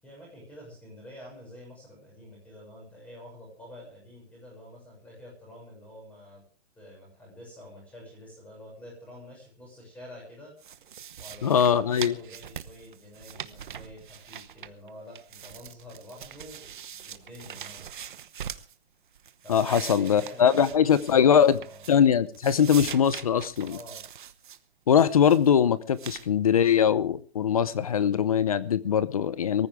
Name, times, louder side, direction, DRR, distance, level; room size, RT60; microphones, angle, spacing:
voice 1, 0.0-6.4 6.7-10.5 11.2-17.8 19.4-21.9 23.6-24.0, left 1 dB, 5° left, -1 dB, 6.5 m, -48 dB
sound 1, 10.6-14.9 15.1-18.7 19.1-22.1 22.3-24.6 25.0-25.5 26.0-26.3, right 9 dB, 45° right, 1.0 m, -42 dB
voice 2, 11.4-12.2 19.5-21.6 21.9-23.8 24.9-29.7, left 8 dB, 30° left, 17 dB, 0.7 m, -22 dB
23.0 x 14.5 x 3.6 m, 0.37 s
hypercardioid pair, 180°, 34 cm